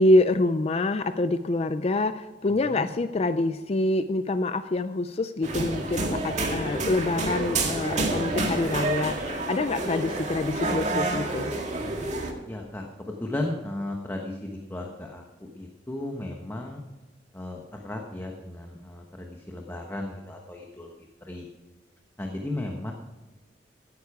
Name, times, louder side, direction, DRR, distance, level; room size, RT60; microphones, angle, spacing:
voice 1, 0.0-11.5, left 2 dB, 35° left, 11 dB, 0.4 m, -26 dB
sound 1, 5.4-12.3, right 2 dB, 40° right, 2.1 m, -29 dB
voice 2, 12.5-16.8 17.3-20.9 21.2-21.5 22.2-22.9, left 1 dB, 15° left, 1 dB, 1.1 m, -35 dB
16.0 x 9.8 x 4.8 m, 1.2 s
head